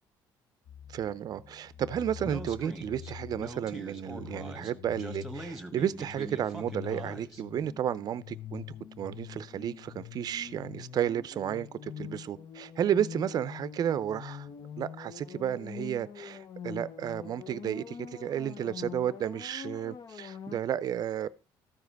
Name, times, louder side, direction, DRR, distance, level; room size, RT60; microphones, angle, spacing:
sound 1, 0.7-20.6, left 8 dB, 45° left, 0.6 m, -45 dB
voice 1, 0.9-8.6 9.0-14.5 14.8-21.3, right 9 dB, 50° right, 0.5 m, -32 dB
Speech, 2.2-7.4, right 1 dB, 5° right, 1.3 m, -42 dB
13.5 x 4.9 x 4.6 m
cardioid pair, 105°, 9 cm